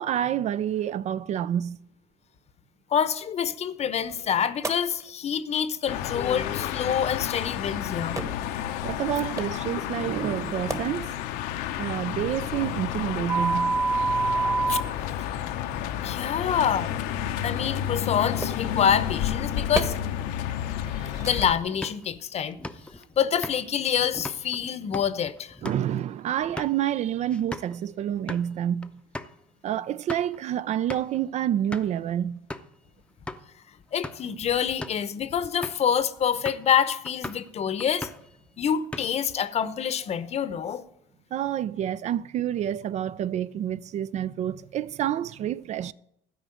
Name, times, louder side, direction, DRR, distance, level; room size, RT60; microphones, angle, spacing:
voice 1, 0.0-1.8 8.8-11.2 11.8-13.8 20.9-21.2 25.6-28.9 29.6-32.4 41.3-45.9, right 10 dB, 45° right, 0.4 m, -28 dB
voice 2, 2.9-8.2 14.7-14.8 16.0-16.9 17.4-20.0 21.2-22.6 23.2-25.5 33.9-38.1 38.6-40.8, left 8 dB, 40° left, 0.8 m, -26 dB
sound 1, 4.6-4.7 7.1-7.2 8.1-8.2 9.0-9.4 10.4-10.7 13.3-14.8 17.2-17.3 18.4-18.6 19.7-19.8 20.6-20.9 21.2-21.4, right 3 dB, 20° right, 1.3 m, -26 dB
sound 2, 5.9-21.6, left 10 dB, 80° left, 0.7 m, -31 dB
sound 3, 21.7-27.8 28.1-28.5 28.8-28.9 29.1-29.4 29.8-30.4 30.9-31.2 31.7-32.0 32.5-32.8 33.3-33.4 33.9-34.3 34.7-35.1 35.6-35.9 36.5-36.7 37.1-37.5 37.8-38.3 38.7-39.3, left 2 dB, 5° left, 0.6 m, -39 dB
12.5 x 5.0 x 7.8 m
supercardioid pair, 95°, 16 cm